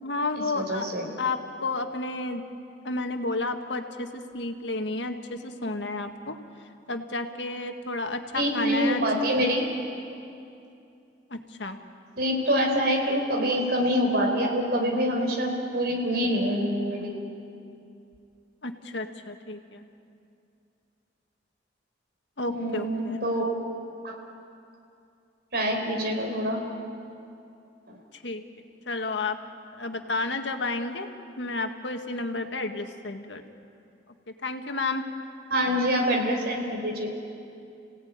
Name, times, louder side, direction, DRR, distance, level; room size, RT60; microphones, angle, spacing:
voice 1, 0.0-0.9 1.2-2.4 2.8-6.4 6.9-9.0 11.3-11.8 18.6-19.8 22.4-23.2 28.1-28.4 28.9-29.4 29.7-31.1 31.4-33.4 34.4-35.0, left 2 dB, 85° left, 5 dB, 1.8 m, -31 dB
voice 2, 0.5-1.1 8.3-9.7 12.2-17.1 22.5-23.5 24.0-24.1 25.5-26.6 27.9-28.0 35.5-37.1, equal, 65° right, 1 dB, 4.6 m, -25 dB
30.0 x 17.5 x 9.5 m, 2.6 s
head